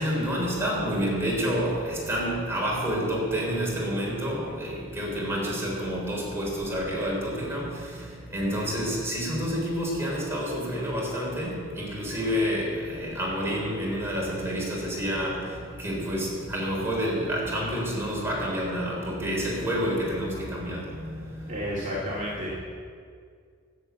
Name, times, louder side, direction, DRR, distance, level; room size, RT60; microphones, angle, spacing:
voice 1, 0.0-7.8 8.3-15.4 15.8-20.8, equal, 15° right, -4 dB, 3.8 m, -28 dB
voice 2, 21.5-22.6, equal, 40° right, -6 dB, 2.3 m, -31 dB
14.0 x 7.2 x 8.1 m, 2.1 s
head